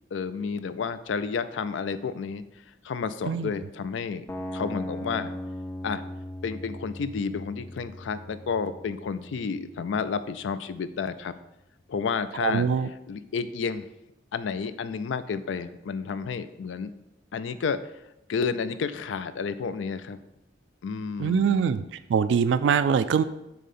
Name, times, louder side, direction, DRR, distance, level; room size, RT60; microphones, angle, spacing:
voice 1, 0.1-2.4 2.8-4.3 4.5-5.3 5.8-6.0 6.4-11.3 11.9-12.7 13.1-13.9 14.3-16.9 17.3-17.8 18.3-20.2 20.8-21.8, left 5 dB, 90° left, 12 dB, 0.4 m, -31 dB
sound 1, 4.3-10.3, left 1 dB, 15° left, 0.3 m, -39 dB
voice 2, 12.4-12.9 21.2-23.2, right 6 dB, 80° right, 13 dB, 0.3 m, -23 dB
6.7 x 3.7 x 4.2 m, 0.88 s
head